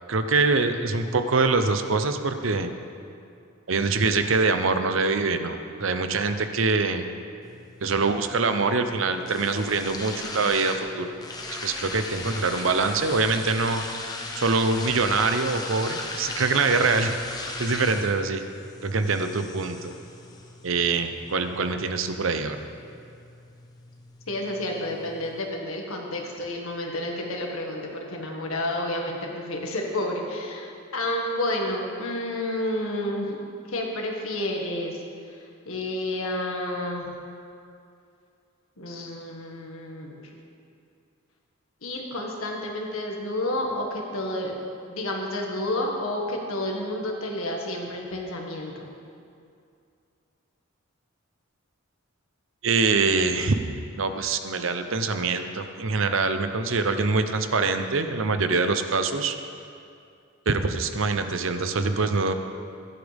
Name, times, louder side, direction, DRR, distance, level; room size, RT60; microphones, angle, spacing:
voice 1, 0.1-2.7 3.7-7.1 7.8-11.1 11.6-13.8 14.4-17.2 17.6-18.4 18.8-19.9 20.6-22.6 52.6-53.6 54.0-59.4 60.5-62.3, right 4 dB, 70° right, 8 dB, 0.7 m, -24 dB
sound 1, 7.4-25.4, left 2 dB, 20° left, 0.9 m, -38 dB
voice 2, 24.3-33.4 33.7-35.4 35.7-37.1 38.8-40.2 41.8-44.6 44.9-48.9, left 1 dB, 85° left, 0 dB, 1.8 m, -30 dB
16.0 x 11.5 x 3.5 m, 2.5 s
head